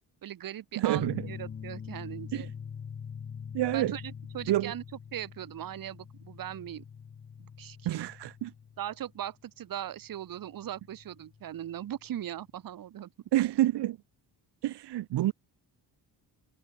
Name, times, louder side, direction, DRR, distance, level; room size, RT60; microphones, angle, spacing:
voice 1, 0.2-2.5 3.7-4.8 5.1-6.8 7.4-8.1 8.8-13.1, right 11 dB, 55° right, 1.2 m, -39 dB
voice 2, 0.8-1.3 2.3-2.5 3.5-3.9 4.5-4.7 7.8-8.5 13.3-14.0 14.6-15.3, right 14 dB, 75° right, 0.9 m, -28 dB
sound 1, 0.9-12.1, left 7 dB, 25° left, 0.8 m, -44 dB
wide cardioid pair, 170°, 42 cm